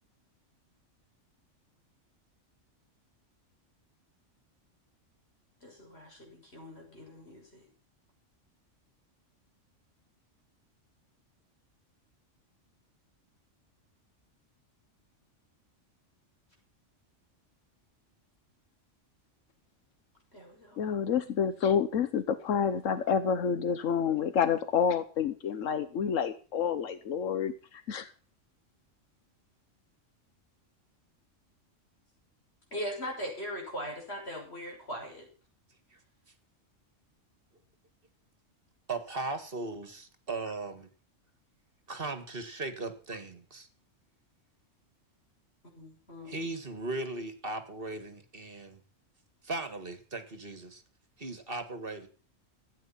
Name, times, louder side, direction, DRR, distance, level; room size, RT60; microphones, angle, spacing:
voice 1, 5.6-7.6 20.3-20.8 32.7-35.3 45.7-46.5, equal, 55° left, 0 dB, 6.7 m, -40 dB
voice 2, 20.8-28.1, left 7 dB, 85° left, 12 dB, 1.3 m, -29 dB
voice 3, 38.9-40.9 41.9-43.7 46.2-48.8 49.4-50.8 51.2-52.1, right 2 dB, 50° right, 9 dB, 2.0 m, -37 dB
14.5 x 9.3 x 7.2 m, 0.39 s
omnidirectional pair, 1.3 m